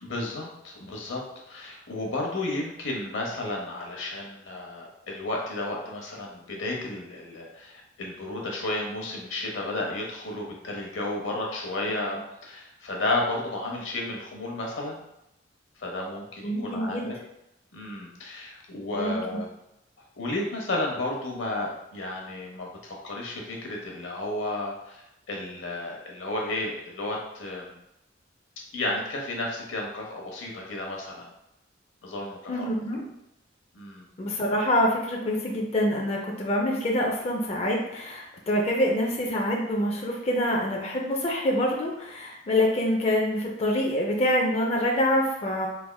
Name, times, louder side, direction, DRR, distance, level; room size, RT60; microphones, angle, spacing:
voice 1, 0.0-15.0 15.8-17.2 17.7-19.5 20.2-27.8 28.7-31.3 32.0-32.7 33.7-34.1, left 2 dB, 90° left, 0 dB, 0.8 m, -32 dB
voice 2, 16.4-17.1 18.9-19.4 32.5-33.0 34.2-45.7, left 1 dB, 35° left, -1 dB, 0.4 m, -26 dB
3.4 x 3.3 x 2.3 m, 0.86 s
head